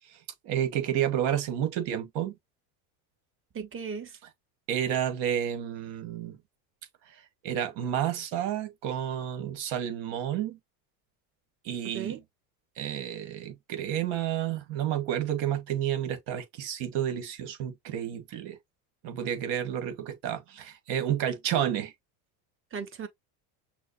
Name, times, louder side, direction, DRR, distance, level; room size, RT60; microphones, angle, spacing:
voice 1, 0.0-2.3 4.7-6.4 7.1-10.6 11.6-12.2 12.8-18.6 19.0-21.9, right 10 dB, 65° right, 1.8 m, -30 dB
voice 2, 3.5-4.2 11.9-12.2 22.7-23.1, right 6 dB, 25° right, 1.2 m, -36 dB
6.2 x 2.4 x 3.0 m
supercardioid pair, 110°, 47 cm